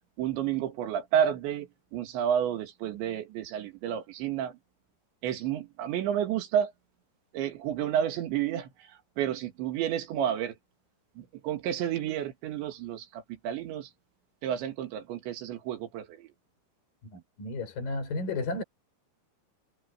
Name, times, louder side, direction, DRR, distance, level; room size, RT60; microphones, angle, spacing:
voice 1, 0.2-4.5 5.2-6.7 7.3-8.7 9.2-10.6 11.2-13.9 14.4-16.3, right 9 dB, 80° right, 4.3 m, -30 dB
voice 2, 17.0-18.6, left 3 dB, 50° left, 7.3 m, -33 dB
omnidirectional pair, 5.2 m